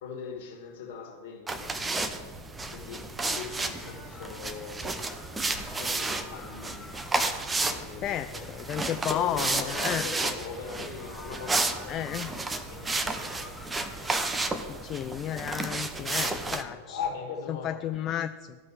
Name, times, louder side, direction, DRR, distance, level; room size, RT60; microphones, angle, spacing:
voice 1, 0.0-2.2 2.7-5.1 5.5-6.9 7.7-8.8 9.1-14.0 14.4-14.8 15.9-17.9, left 5 dB, 50° left, 0 dB, 1.9 m, -41 dB
sound 1, 1.5-16.6, right 3 dB, 10° right, 0.7 m, -32 dB
sound 2, 3.3-14.2, left 2 dB, 5° left, 1.1 m, -49 dB
voice 2, 8.0-10.1 11.9-12.3 14.6-17.0 17.5-18.6, left 11 dB, 30° left, 10 dB, 0.3 m, -32 dB
15.0 x 5.9 x 3.1 m, 1.5 s
figure-of-eight pair, 90°, 0 cm